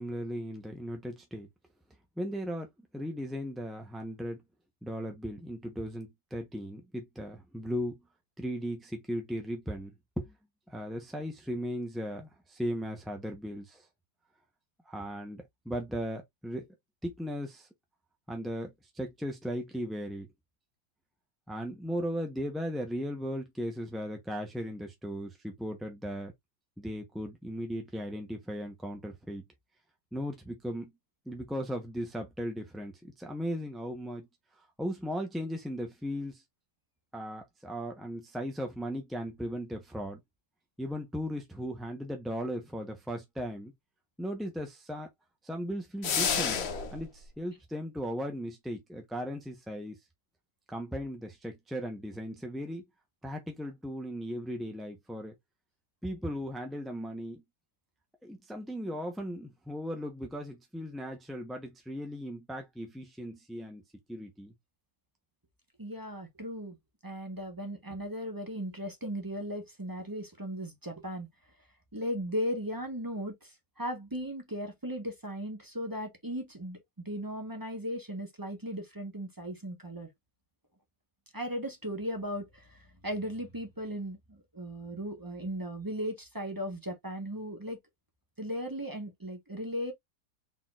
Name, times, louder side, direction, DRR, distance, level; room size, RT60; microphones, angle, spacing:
voice 1, 0.0-1.5 2.2-2.7 2.9-4.4 4.8-8.0 8.4-10.3 10.7-13.9 14.9-16.6 17.0-17.7 18.3-20.3 21.5-26.3 26.8-29.4 30.1-30.9 31.3-34.3 34.6-36.4 37.1-40.2 40.8-43.7 44.2-45.1 45.4-50.0 50.7-52.8 53.2-55.3 56.0-57.4 58.2-63.8 64.1-64.5, equal, ahead, 0.3 m, -37 dB
sound 1, 46.0-47.0, left 6 dB, 50° left, 0.8 m, -29 dB
voice 2, 65.8-66.8 67.0-71.3 71.9-76.8 77.0-80.1 81.3-87.8 88.4-89.9, equal, 15° right, 0.9 m, -37 dB
4.3 x 3.9 x 2.4 m
omnidirectional pair, 1.8 m